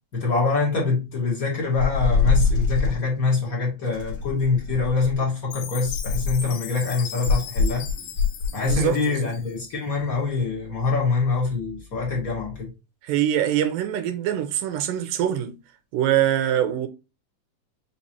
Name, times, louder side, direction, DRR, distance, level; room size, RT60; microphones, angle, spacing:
voice 1, 0.1-7.9 8.5-12.7, left 4 dB, 50° left, 1.1 m, -25 dB
sound 1, 1.8-3.0 3.9-5.2 5.8-6.5 7.2-8.9, left 4 dB, 90° left, 1.1 m, -23 dB
Chime, 5.5-9.8, left 8 dB, 70° left, 2.1 m, -38 dB
voice 2, 8.6-9.2 13.0-15.6 15.9-16.9, right 11 dB, 85° right, 2.3 m, -23 dB
5.5 x 2.9 x 2.8 m
omnidirectional pair, 3.7 m